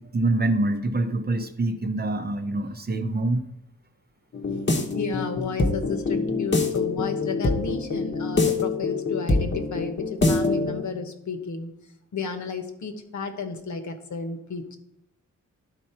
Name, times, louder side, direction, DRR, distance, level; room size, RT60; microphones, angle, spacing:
voice 1, 0.0-3.4, right 2 dB, 30° right, 7 dB, 0.7 m, -25 dB
sound 1, 4.3-10.9, left 3 dB, 35° left, 1.0 m, -25 dB
voice 2, 4.5-11.7 12.1-14.8, left 5 dB, 65° left, 6 dB, 1.1 m, -32 dB
11.5 x 4.4 x 4.4 m, 0.80 s
wide cardioid pair, 125°, 31 cm